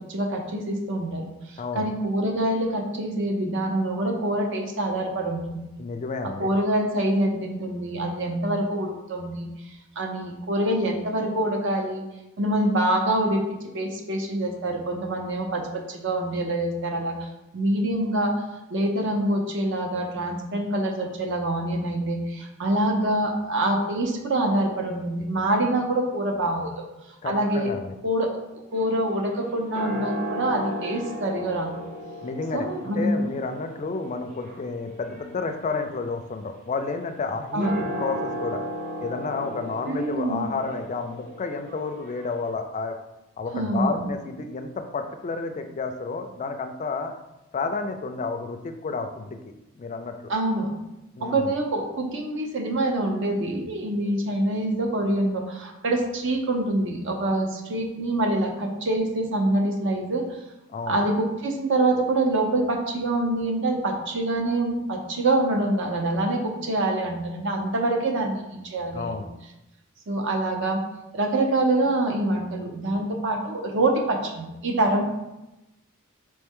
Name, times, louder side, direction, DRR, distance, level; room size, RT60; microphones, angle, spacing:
voice 1, 0.0-5.6 6.4-9.5 10.0-12.0 12.4-13.4 13.7-17.3 17.5-18.3 18.7-26.9 27.2-27.7 28.0-28.3 28.7-31.7 32.5-33.2 37.5-37.7 39.9-40.4 43.5-44.0 50.3-50.7 51.2-60.2 60.9-69.2 70.1-70.8 71.1-75.0, right 1 dB, 60° right, 2 dB, 0.7 m, -25 dB
voice 2, 1.6-1.9 5.8-6.5 27.2-28.0 32.2-38.6 39.0-42.9 43.4-47.1 47.5-49.4 49.8-50.3 51.1-51.5 60.7-61.0 68.9-69.3, left 4 dB, 35° left, 6 dB, 0.3 m, -31 dB
sound 1, 28.7-42.5, equal, 40° right, 1.0 m, -36 dB
4.3 x 3.1 x 3.6 m, 0.96 s
head